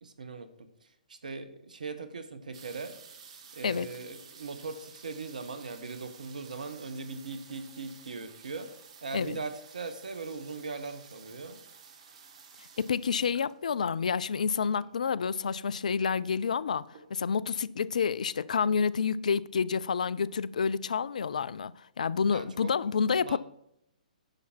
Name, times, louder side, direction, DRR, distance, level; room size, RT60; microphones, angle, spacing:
voice 1, 0.0-2.9 3.5-8.7 9.0-11.6 22.3-22.7 23.2-23.4, right 4 dB, 70° right, 1.3 m, -40 dB
sound 1, 2.5-15.1 15.9-16.0 16.2-16.6 16.9-17.5 18.0-18.1 18.3-18.4, right 6 dB, 50° right, 1.7 m, -53 dB
voice 2, 12.8-23.4, left 6 dB, 60° left, 0.4 m, -29 dB
10.5 x 7.0 x 4.5 m
figure-of-eight pair, 125°, 4 cm